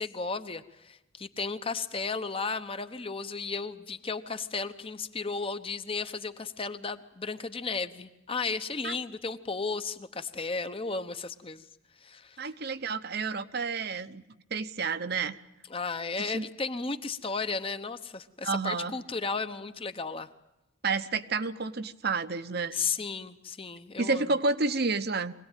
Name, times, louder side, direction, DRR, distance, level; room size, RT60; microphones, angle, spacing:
voice 1, 0.0-11.6 12.0-12.4 15.7-20.3 22.7-24.2, left 4 dB, 25° left, 10 dB, 1.0 m, -34 dB
voice 2, 12.4-14.2 14.5-15.4 16.2-16.4 18.4-18.9 20.8-22.8 24.0-25.3, right 4 dB, 50° right, 11 dB, 0.9 m, -30 dB
24.5 x 18.0 x 9.1 m, 0.96 s
head